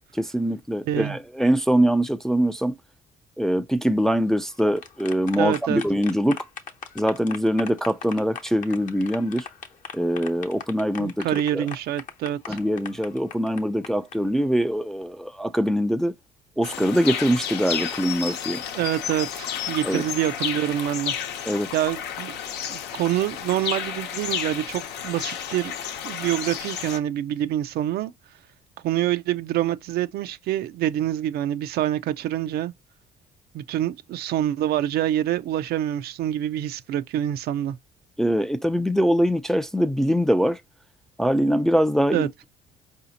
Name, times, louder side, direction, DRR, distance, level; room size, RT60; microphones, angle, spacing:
voice 1, 0.2-2.7 3.4-6.4 7.0-9.5 9.9-11.6 12.5-16.1 16.6-18.6 19.8-20.0 21.4-21.7 38.2-40.6 41.2-42.3, equal, 5° left, 0.3 m, -23 dB
voice 2, 0.9-1.2 5.4-5.8 11.0-12.6 18.7-21.1 21.7-22.4 22.7-25.7 26.0-28.1 28.8-32.7 33.5-37.8 42.1-42.3, right 12 dB, 70° right, 0.4 m, -26 dB
sound 1, 4.4-14.2, left 7 dB, 50° left, 0.8 m, -39 dB
sound 2, 16.6-27.0, left 8 dB, 80° left, 0.8 m, -31 dB
4.8 x 2.7 x 2.7 m
cardioid pair, 110°, 17 cm